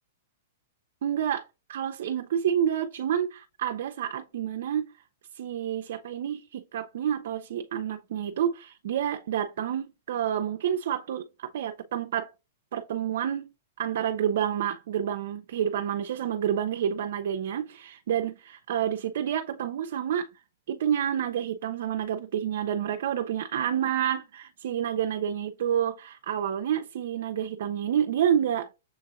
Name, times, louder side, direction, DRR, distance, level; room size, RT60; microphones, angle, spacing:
voice 1, 1.0-4.9 5.3-12.3 12.7-13.5 13.8-20.3 20.7-28.7, right 9 dB, 60° right, 0.4 m, -29 dB
6.7 x 2.8 x 2.4 m
hypercardioid pair, 160°, 0 cm